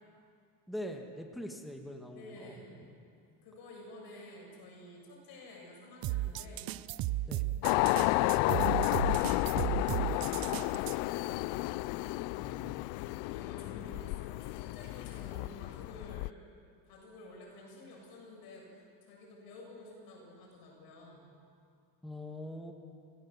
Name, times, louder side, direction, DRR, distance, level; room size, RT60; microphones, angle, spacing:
voice 1, 0.7-2.6 7.3-7.5 12.4-13.2 22.0-22.7, left 1 dB, ahead, 3 dB, 1.7 m, -43 dB
voice 2, 2.1-2.9 3.4-6.7 7.3-11.3 12.3-16.3 16.8-18.7 19.0-21.3, left 2 dB, 60° left, -1 dB, 7.3 m, -51 dB
sound 1, 6.0-11.0, right 15 dB, 55° right, 0.7 m, -35 dB
sound 2, 7.6-16.3, left 20 dB, 85° left, 0.5 m, -32 dB
30.0 x 14.5 x 7.3 m, 2.4 s
cardioid pair, 135°, 42 cm